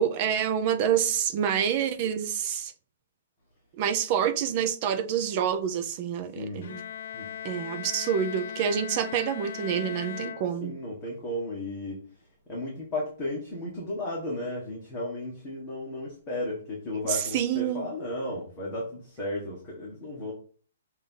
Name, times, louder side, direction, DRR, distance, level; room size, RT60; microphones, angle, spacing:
voice 1, 0.0-2.7 3.8-6.8 7.4-10.7 17.0-17.9, right 8 dB, 30° right, 0.6 m, -27 dB
voice 2, 6.3-6.7 7.1-7.3 10.6-12.0 12.5-20.3, left 1 dB, 15° left, 1.4 m, -34 dB
Bowed string instrument, 6.6-11.1, left 9 dB, 55° left, 0.5 m, -39 dB
6.8 x 2.7 x 5.5 m
hypercardioid pair, 170°, 0 cm